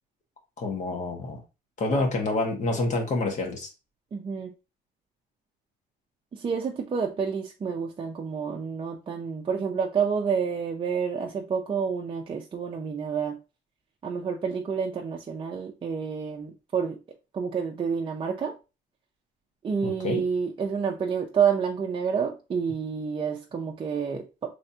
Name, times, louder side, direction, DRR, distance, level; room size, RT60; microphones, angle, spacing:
voice 1, 0.6-1.4 1.8-3.7 19.8-20.2, left 2 dB, 45° left, 1.5 m, -27 dB
voice 2, 4.1-4.5 6.3-13.4 14.0-17.0 17.3-18.6 19.6-24.6, right 6 dB, 30° right, 0.6 m, -29 dB
3.9 x 3.4 x 2.8 m
cardioid pair, 110°, 17 cm